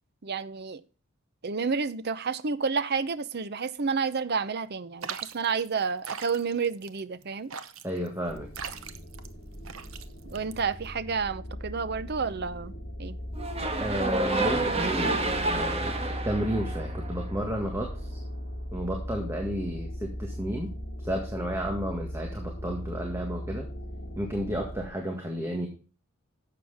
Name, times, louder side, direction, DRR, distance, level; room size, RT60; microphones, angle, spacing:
voice 1, 0.2-0.8 1.4-7.5 10.3-12.7 13.0-13.2, right 5 dB, 50° right, 0.7 m, -30 dB
sound 1, 5.0-11.0, right 7 dB, 80° right, 0.9 m, -41 dB
voice 2, 7.8-8.5 13.8-18.2 18.7-20.7 21.0-23.7 24.2-25.7, equal, 10° right, 1.8 m, -32 dB
sound 2, 8.3-24.9, equal, 55° left, 3.5 m, -38 dB
sound 3, 13.4-17.6, right 2 dB, 30° right, 1.6 m, -29 dB
11.5 x 7.6 x 3.5 m
head